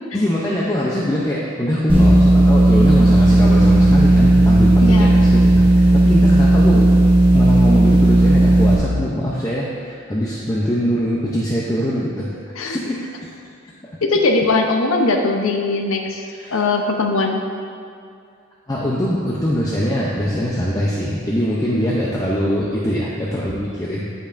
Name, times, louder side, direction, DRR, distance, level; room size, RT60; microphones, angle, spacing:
voice 1, 0.1-6.9 7.3-12.3 12.6-13.3 13.8-14.0 16.3-16.7 18.7-24.0, equal, 15° left, -5 dB, 0.6 m, -22 dB
sound 1, 1.9-8.8, right 1 dB, 25° right, 1.3 m, -13 dB
voice 2, 4.8-5.2 12.6-12.8 14.0-16.2 16.5-17.4, left 3 dB, 80° left, 3 dB, 0.8 m, -20 dB
13.0 x 5.3 x 2.6 m, 2.4 s
head